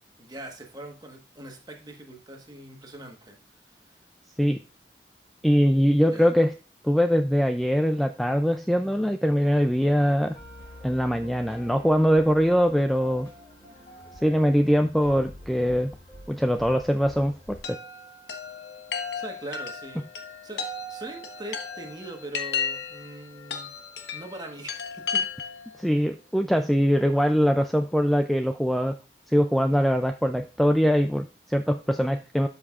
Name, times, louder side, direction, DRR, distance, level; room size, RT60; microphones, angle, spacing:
voice 1, 0.2-3.4 6.0-6.3 19.1-20.1 20.4-23.7 24.1-25.7, right 1 dB, 25° right, 3 dB, 1.3 m, -41 dB
voice 2, 5.4-6.5 6.8-10.4 10.8-13.3 14.2-15.9 16.3-17.8 25.8-29.0 29.3-32.5, equal, ahead, 6 dB, 0.3 m, -22 dB
sound 1, 10.3-17.6, left 1 dB, 15° left, 4.2 m, -47 dB
Chime, 17.6-25.7, left 5 dB, 85° left, 1.2 m, -34 dB
12.5 x 5.5 x 2.4 m, 0.35 s
head